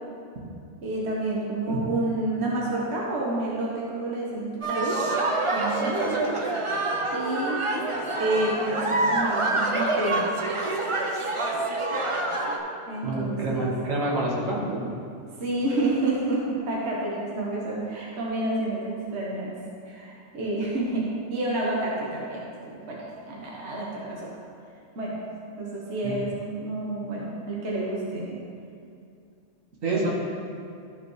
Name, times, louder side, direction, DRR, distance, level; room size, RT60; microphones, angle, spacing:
voice 1, 0.8-5.0 5.5-6.4 7.0-7.6 8.2-10.3 12.9-13.7 15.4-19.6 19.8-24.3 24.9-25.3 25.6-28.4 29.9-30.1, right 2 dB, 55° right, -5 dB, 1.5 m, -29 dB
sound 1, 4.6-12.6, right 2 dB, 35° right, 0.6 m, -26 dB
voice 2, 13.0-14.9 26.0-26.2 29.8-30.1, right 2 dB, 75° right, -5 dB, 1.9 m, -27 dB
14.5 x 5.0 x 3.2 m, 2.5 s
omnidirectional pair, 1.4 m